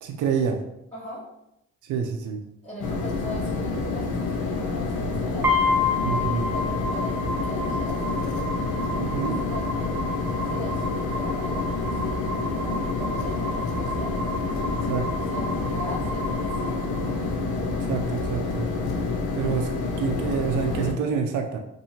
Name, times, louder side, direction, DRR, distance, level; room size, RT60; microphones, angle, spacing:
voice 1, 0.0-0.6 1.8-2.4 5.0-5.1 6.0-6.5 9.0-9.4 14.9-15.1 17.8-18.7 19.3-19.7 20.0-21.6, right 6 dB, 75° right, 4 dB, 0.5 m, -27 dB
voice 2, 0.9-1.3 2.6-8.0 8.9-12.2 12.5-14.3 14.7-17.0, equal, 20° left, -9 dB, 1.2 m, -41 dB
sound 1, 2.8-20.9, left 3 dB, 80° left, 0.7 m, -28 dB
sound 2, 5.4-17.4, left 2 dB, 5° right, 1.0 m, -31 dB
2.7 x 2.6 x 4.2 m, 0.84 s
cardioid pair, 90°, 30 cm